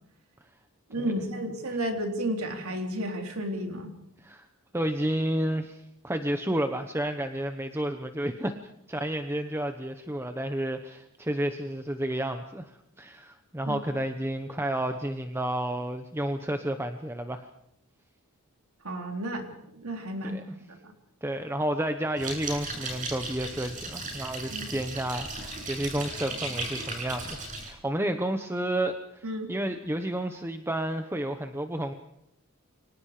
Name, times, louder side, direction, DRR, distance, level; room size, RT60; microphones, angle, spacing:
voice 1, 0.9-3.9 13.7-13.8 18.8-19.5 19.7-20.4 20.8-20.9 24.5-24.7 29.2-29.5, right 1 dB, 75° right, 4 dB, 3.6 m, -32 dB
voice 2, 4.7-8.6 8.9-17.5 20.2-20.4 21.2-31.9, right 1 dB, 10° right, 6 dB, 1.1 m, -31 dB
sound 1, 22.2-27.7, right 2 dB, 35° right, 7.7 m, -36 dB
29.5 x 24.5 x 5.0 m, 0.76 s
head